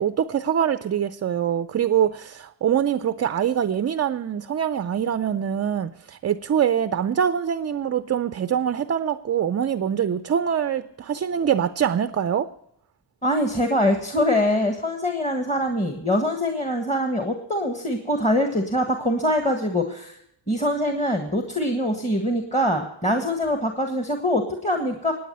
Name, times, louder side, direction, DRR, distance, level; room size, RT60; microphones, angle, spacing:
voice 1, 0.0-12.5, right 8 dB, 35° right, 13 dB, 0.4 m, -24 dB
voice 2, 13.2-20.2 20.5-25.1, left 1 dB, 15° left, 4 dB, 1.5 m, -23 dB
18.0 x 9.2 x 5.4 m, 0.76 s
cardioid pair, 80°, 46 cm